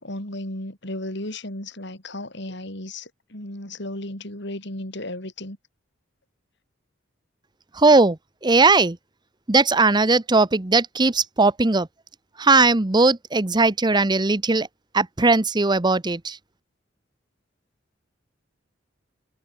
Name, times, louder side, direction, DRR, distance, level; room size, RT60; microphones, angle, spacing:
voice 1, 0.0-5.6, left 1 dB, 65° left, 6.8 m, -34 dB
voice 2, 7.7-9.0 9.5-11.9 12.4-14.7 14.9-16.4, right 3 dB, 25° right, 0.9 m, -19 dB
head